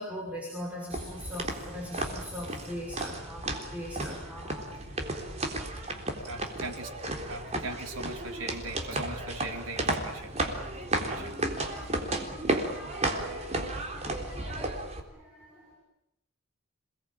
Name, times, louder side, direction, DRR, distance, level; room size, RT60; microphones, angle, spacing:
voice 1, 0.0-4.9 5.8-5.9 10.9-14.7 15.1-15.8, equal, 5° right, -3 dB, 5.8 m, -42 dB
sound 1, 0.9-15.0, right 2 dB, 35° right, 3.7 m, -33 dB
voice 2, 6.2-6.9 7.2-10.6 11.0-11.6, right 2 dB, 80° right, 3 dB, 4.1 m, -40 dB
28.0 x 20.0 x 8.9 m, 0.83 s
head